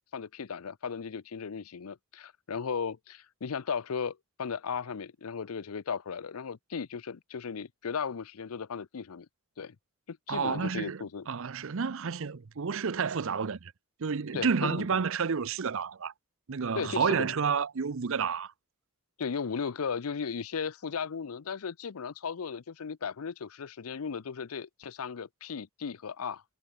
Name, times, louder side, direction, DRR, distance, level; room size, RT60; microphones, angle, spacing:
voice 1, 0.0-9.3 9.6-9.8 10.1-11.3 14.3-14.9 16.8-17.3 19.2-26.4, left 6 dB, 90° left, 0.6 m, -36 dB
voice 2, 10.3-13.7 14.0-16.1 16.5-18.5, right 5 dB, 65° right, 0.6 m, -30 dB
head